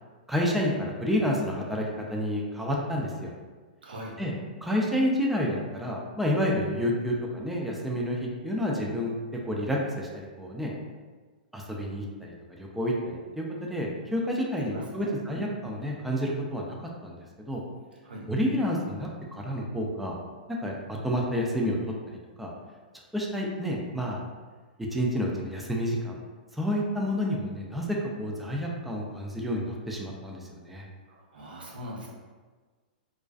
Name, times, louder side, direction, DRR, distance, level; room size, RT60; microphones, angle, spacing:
voice 1, 0.3-3.3 4.2-4.3 4.6-9.2 9.4-10.7 11.5-16.8 17.0-17.6 18.3-20.1 20.6-21.8 22.1-22.5 23.1-24.2 24.8-26.2 26.5-30.8, equal, ahead, -2 dB, 0.3 m, -29 dB
voice 2, 3.8-4.1 14.7-15.5 18.0-18.3 31.1-32.1, equal, 85° right, -3 dB, 0.6 m, -41 dB
2.4 x 2.3 x 2.3 m, 1.4 s
hypercardioid pair, 120°, 5 cm